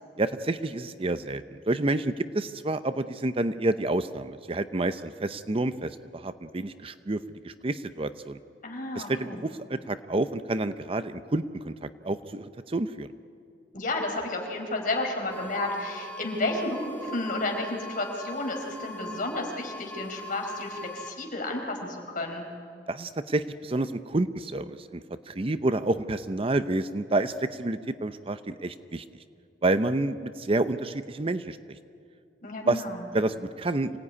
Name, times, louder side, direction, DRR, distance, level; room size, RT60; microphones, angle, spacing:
voice 1, 0.2-7.2 7.4-8.4 8.9-13.1 22.9-29.0 29.6-31.6 32.7-32.8 33.1-34.0, right 2 dB, 30° right, 11 dB, 0.7 m, -29 dB
voice 2, 8.6-9.4 13.7-22.4 32.4-33.0, left 2 dB, 50° left, 2 dB, 4.4 m, -32 dB
sound 1, 15.3-21.1, left 1 dB, 10° left, 2.2 m, -41 dB
26.0 x 17.5 x 9.7 m, 2.4 s
head